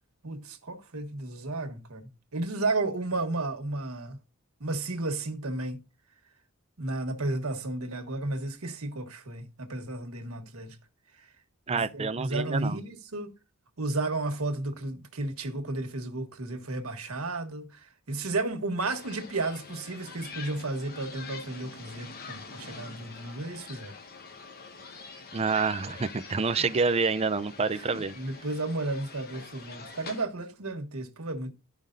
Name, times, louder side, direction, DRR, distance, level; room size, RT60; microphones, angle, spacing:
voice 1, 0.2-4.2 4.6-5.8 6.8-10.8 11.7-13.3 13.8-23.9 26.5-26.7 27.7-31.5, right 2 dB, 85° right, 1.4 m, -33 dB
voice 2, 11.7-12.8 25.3-28.2, right 4 dB, 30° right, 0.5 m, -27 dB
sound 1, 18.8-30.2, left 4 dB, 45° left, 1.0 m, -45 dB
12.5 x 5.2 x 2.6 m
head